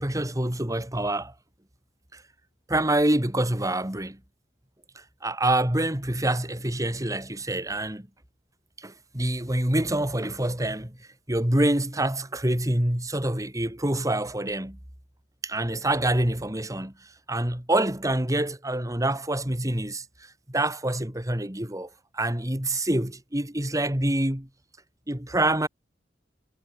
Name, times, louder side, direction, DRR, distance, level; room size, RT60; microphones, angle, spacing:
voice 1, 0.0-1.3 2.1-2.2 2.7-4.2 5.2-8.1 8.8-11.0 11.3-14.8 15.4-16.9 17.3-20.0 20.5-24.5 25.1-25.7, right 1 dB, 20° right, 2.7 m, -26 dB
head